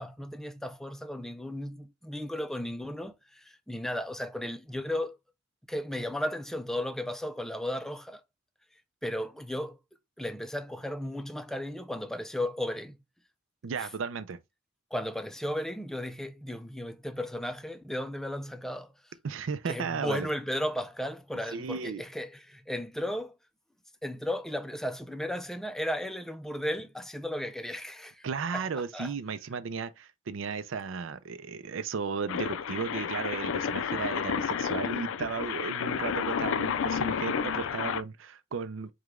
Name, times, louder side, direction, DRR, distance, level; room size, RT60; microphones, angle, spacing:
voice 1, 0.0-5.2 5.7-8.2 9.0-9.8 10.2-13.0 13.8-13.9 14.9-19.1 19.7-23.4 24.0-28.3 28.5-28.6 28.9-29.1, left 1 dB, ahead, 0.4 m, -35 dB
voice 2, 13.6-14.4 19.2-20.3 21.5-22.0 28.2-38.9, right 5 dB, 75° right, 0.5 m, -35 dB
sound 1, 32.3-38.0, left 7 dB, 75° left, 0.4 m, -31 dB
4.9 x 2.2 x 3.6 m
head